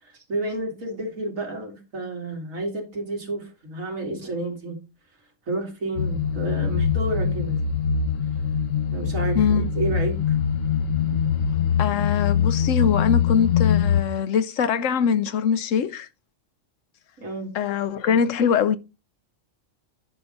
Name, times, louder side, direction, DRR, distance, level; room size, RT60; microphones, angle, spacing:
voice 1, 0.0-4.8 5.5-7.6 8.9-10.4 17.2-17.6, right 2 dB, 85° right, 3.0 m, -30 dB
sound 1, 6.0-14.0, left 7 dB, 55° left, 0.8 m, -23 dB
voice 2, 9.3-9.7 11.8-16.1 17.5-18.8, left 7 dB, 75° left, 1.1 m, -23 dB
10.5 x 5.8 x 3.9 m
omnidirectional pair, 1.4 m